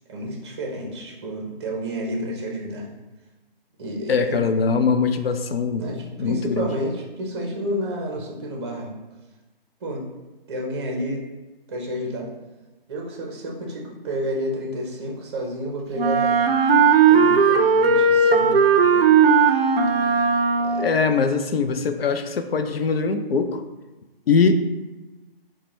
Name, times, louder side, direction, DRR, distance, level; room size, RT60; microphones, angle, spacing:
voice 1, 0.1-2.9 3.8-4.4 5.8-8.9 9.8-10.0 10.5-11.2 11.7-12.3 12.9-16.4 17.1-19.1 20.6-20.9, equal, 30° right, -1 dB, 0.6 m, -30 dB
voice 2, 4.1-5.9 6.2-6.7 20.8-23.6 24.3-24.5, left 5 dB, 80° left, 8 dB, 0.5 m, -22 dB
Wind instrument woodwind instrument, 16.0-21.0, right 5 dB, 75° right, 0.5 m, -17 dB
4.5 x 2.1 x 3.0 m, 1.1 s
figure-of-eight pair, 150°, 29 cm